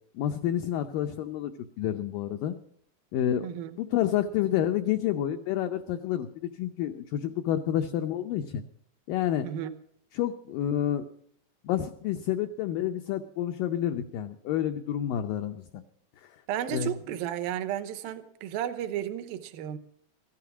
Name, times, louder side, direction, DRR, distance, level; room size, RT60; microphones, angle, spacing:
voice 1, 0.1-1.5 1.8-2.6 3.1-3.5 3.8-8.6 9.1-9.5 10.1-11.0 11.6-15.8 16.7-16.9, left 11 dB, 80° left, 2.0 m, -29 dB
voice 2, 3.4-3.8 9.4-9.7 16.5-19.8, right 10 dB, 70° right, 2.5 m, -33 dB
15.0 x 11.5 x 6.1 m
omnidirectional pair, 4.7 m